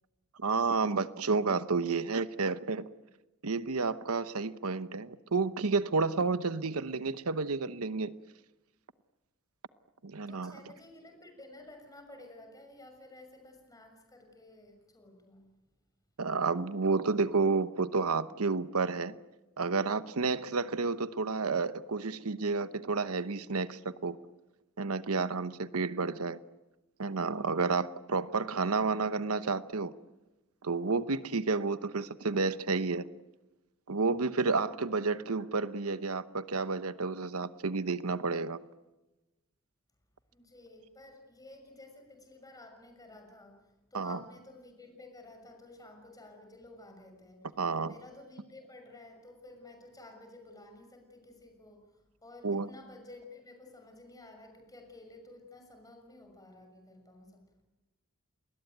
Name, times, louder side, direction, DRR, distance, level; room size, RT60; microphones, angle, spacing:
voice 1, 0.4-2.8 3.4-8.1 10.0-10.5 16.2-19.2 19.6-24.2 24.8-26.4 27.0-29.9 30.6-33.0 33.9-38.6 43.9-44.2 47.6-47.9 52.4-52.7, right 4 dB, 85° right, 13 dB, 0.9 m, -30 dB
voice 2, 10.3-15.5 40.3-57.4, left 2 dB, 15° left, 5 dB, 6.5 m, -53 dB
29.5 x 21.0 x 9.3 m, 1.1 s
head